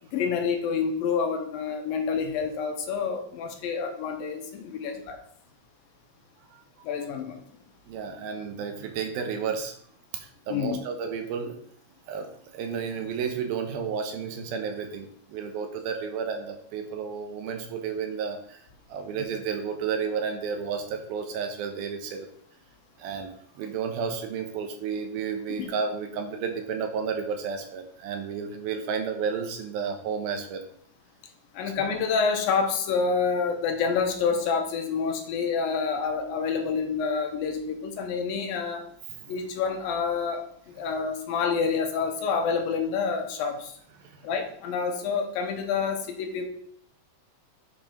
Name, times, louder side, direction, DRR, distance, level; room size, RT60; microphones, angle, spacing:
voice 1, 0.1-5.2 6.8-7.4 10.5-10.8 25.6-25.7 31.5-38.8 39.3-43.7 44.2-46.5, left 5 dB, 75° left, 4 dB, 2.7 m, -28 dB
voice 2, 7.9-9.7 10.1-11.6 12.1-18.6 18.9-22.3 23.0-30.6 39.2-39.3 44.0-44.2, right 6 dB, 80° right, 5 dB, 2.9 m, -32 dB
8.5 x 4.7 x 5.2 m, 0.64 s
omnidirectional pair, 4.3 m